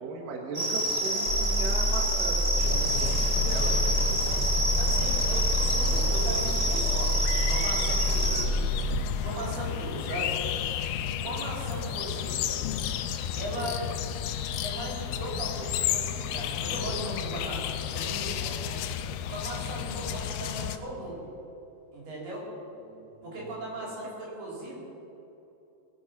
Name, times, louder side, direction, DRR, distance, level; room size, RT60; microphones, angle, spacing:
voice 1, 0.0-3.2 3.4-4.3 11.2-11.5 19.9-20.0 22.9-23.1 23.4-23.5, right 3 dB, 65° right, 1 dB, 2.7 m, -38 dB
sound 1, 0.5-8.4, right 1 dB, 25° right, 1.5 m, -28 dB
sound 2, 1.3-9.0, equal, 55° left, 3.3 m, -28 dB
sound 3, 2.6-20.8, left 9 dB, 80° left, 2.3 m, -33 dB
voice 2, 4.8-8.6 9.2-10.4 11.2-12.6 13.4-13.8 14.6-18.8 19.3-21.3 21.9-22.5 23.2-24.8, right 1 dB, 85° right, -4 dB, 5.8 m, -38 dB
21.0 x 8.8 x 5.9 m, 2.9 s
omnidirectional pair, 4.4 m